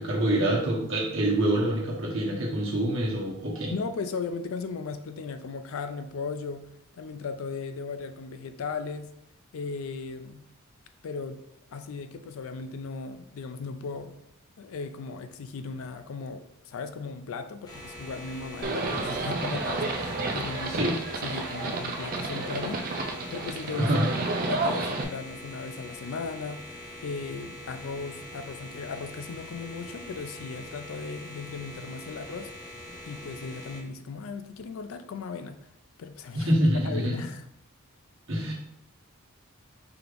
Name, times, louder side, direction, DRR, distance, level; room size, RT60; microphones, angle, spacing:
voice 1, 0.0-3.7 20.7-21.0 23.8-24.1 36.3-37.3 38.3-38.5, right 1 dB, 60° right, -3 dB, 1.2 m, -26 dB
voice 2, 3.7-6.6 7.0-9.1 9.5-10.5 11.0-11.4 11.7-14.1 14.6-21.0 21.2-22.9 23.3-23.9 24.3-32.5 33.1-35.7 36.0-36.5 36.8-37.4, left 4 dB, 70° left, 9 dB, 0.4 m, -37 dB
sound 1, 17.7-33.8, left 1 dB, 20° left, 0.5 m, -43 dB
Livestock farm animals working animals, 18.6-25.0, right 3 dB, 40° right, 0.4 m, -31 dB
4.8 x 3.2 x 2.5 m, 0.75 s
head